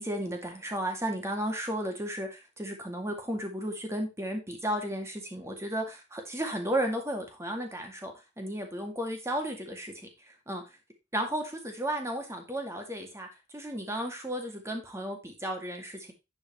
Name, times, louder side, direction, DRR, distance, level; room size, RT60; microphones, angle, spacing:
voice 1, 0.0-9.9 10.5-10.6 11.1-13.3 13.5-16.1, right 1 dB, 15° right, 3 dB, 2.1 m, -34 dB
11.0 x 4.6 x 4.3 m, 0.25 s
head